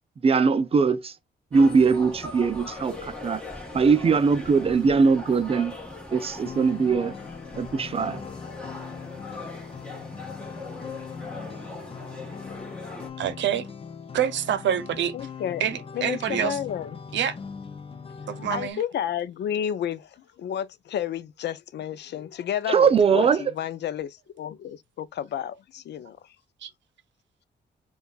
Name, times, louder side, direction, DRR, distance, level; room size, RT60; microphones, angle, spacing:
voice 1, 0.2-1.2 1.5-3.4 3.7-5.7 6.1-7.2 7.6-8.2 22.7-23.4, right 5 dB, 30° right, 0.5 m, -21 dB
sound 1, 1.5-13.1, left 2 dB, 5° left, 1.3 m, -40 dB
sound 2, 6.5-18.7, left 6 dB, 30° left, 0.7 m, -40 dB
voice 2, 13.2-13.7 14.1-15.1 15.6-16.6 17.1-17.4 18.3-18.8 26.6-26.7, right 9 dB, 85° right, 0.7 m, -26 dB
voice 3, 15.1-15.6 15.9-17.0 18.5-20.1 20.4-26.2, left 10 dB, 70° left, 0.5 m, -31 dB
6.7 x 2.4 x 2.3 m
cardioid pair, 130°, 18 cm